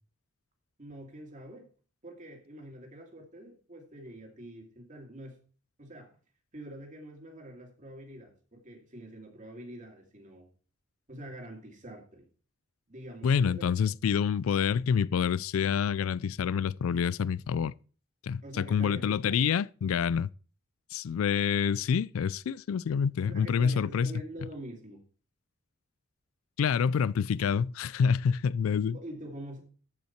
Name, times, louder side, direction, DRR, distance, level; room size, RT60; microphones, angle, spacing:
voice 1, 0.8-1.7 2.0-5.4 5.8-6.1 6.5-10.5 11.1-12.3 12.9-13.7 18.4-19.4 23.2-25.0 28.9-29.6, right 1 dB, 40° right, 2.4 m, -45 dB
voice 2, 13.2-17.7 18.2-20.3 20.9-24.1 26.6-29.0, left 7 dB, 90° left, 0.3 m, -27 dB
13.5 x 5.7 x 4.4 m
head